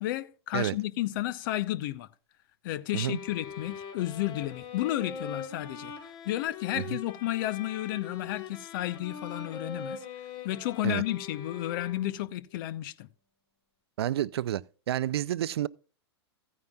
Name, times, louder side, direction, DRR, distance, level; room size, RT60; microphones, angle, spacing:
voice 1, 0.0-2.1 2.6-5.9 6.2-10.0 10.4-13.1, left 15 dB, 50° left, 0.7 m, -32 dB
sound 1, 2.9-12.3, left 6 dB, 35° left, 1.4 m, -42 dB
voice 2, 14.0-15.7, right 12 dB, 65° right, 0.4 m, -30 dB
15.0 x 9.5 x 2.3 m
hypercardioid pair, 105°, 14 cm